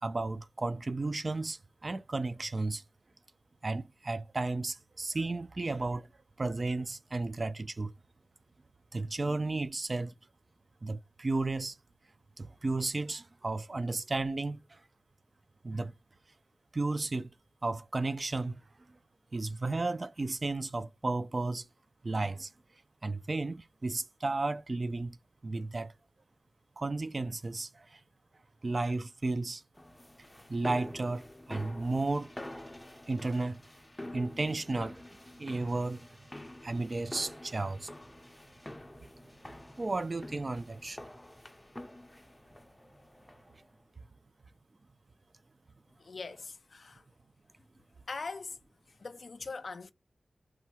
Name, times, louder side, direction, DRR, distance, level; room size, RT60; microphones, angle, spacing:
voice 1, 0.0-2.8 3.6-6.1 6.4-7.9 8.9-10.1 10.8-11.8 12.4-14.8 15.6-15.9 16.7-17.3 17.6-18.6 18.9-19.0 19.3-21.7 22.0-22.5 23.0-25.2 25.4-25.9 26.8-28.0 28.6-29.6 30.5-32.3 33.1-33.6 34.1-35.0 35.4-36.0 36.6-37.9 39.8-41.0, right 3 dB, 45° right, 0.4 m, -33 dB
sound 1, 29.7-43.6, left 1 dB, 15° left, 0.5 m, -47 dB
voice 2, 46.0-47.0 48.1-48.6 48.9-49.9, left 4 dB, 70° left, 0.4 m, -41 dB
3.6 x 2.0 x 2.8 m
cardioid pair, 55°, 0 cm